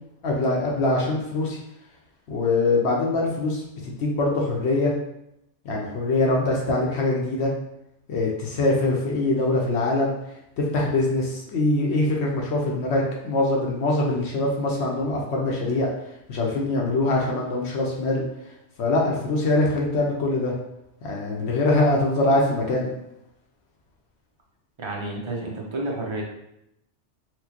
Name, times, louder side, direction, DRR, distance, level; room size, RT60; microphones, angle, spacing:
voice 1, 0.2-1.6 2.3-4.9 5.6-7.5 8.1-10.1 10.6-15.9 16.3-18.2 18.8-20.5 21.0-22.9, left 2 dB, 70° left, -2 dB, 0.9 m, -23 dB
voice 2, 24.8-26.2, right 2 dB, 35° right, -2 dB, 0.5 m, -30 dB
4.3 x 2.1 x 2.8 m, 0.82 s
omnidirectional pair, 1.2 m